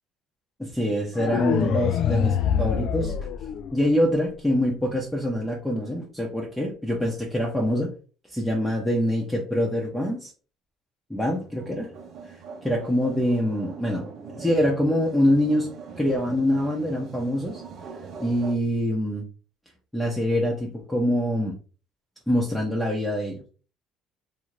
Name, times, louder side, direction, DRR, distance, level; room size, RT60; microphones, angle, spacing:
voice 1, 0.6-3.1 3.7-7.9 8.3-10.3 11.1-11.9 12.2-15.7 16.0-17.6 18.2-19.2 19.9-21.5 22.3-23.4, equal, 5° left, -2 dB, 0.7 m, -25 dB
sound 1, 1.2-4.2, left 8 dB, 65° left, 0.3 m, -25 dB
sound 2, 11.2-18.5, right 5 dB, 50° right, 0.7 m, -42 dB
2.7 x 2.5 x 3.1 m, 0.37 s
cardioid pair, 100°, 0 cm